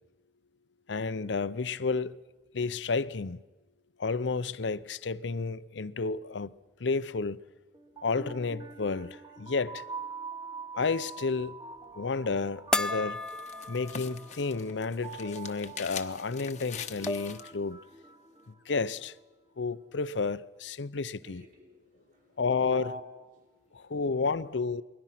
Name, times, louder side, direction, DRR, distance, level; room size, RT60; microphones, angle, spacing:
voice 1, 0.9-2.2 2.5-3.4 4.0-6.5 6.8-7.4 8.0-9.8 10.8-11.6 11.9-13.2 13.7-17.8 18.5-19.2 19.6-21.5 22.4-22.9 23.7-24.8, left 4 dB, 80° left, 0.7 m, -31 dB
sound 1, 7.7-18.8, right 4 dB, 25° right, 1.2 m, -45 dB
sound 2, 12.7-17.5, left 7 dB, 40° left, 1.1 m, -43 dB
sound 3, 12.7-14.3 14.7-14.8 16.4-16.5 16.8-17.4, left 2 dB, 5° left, 0.7 m, -33 dB
voice 2, 21.1-22.4 22.7-23.0 23.4-23.9 24.2-24.4, left 1 dB, 50° right, 4.5 m, -47 dB
28.5 x 21.5 x 5.9 m
head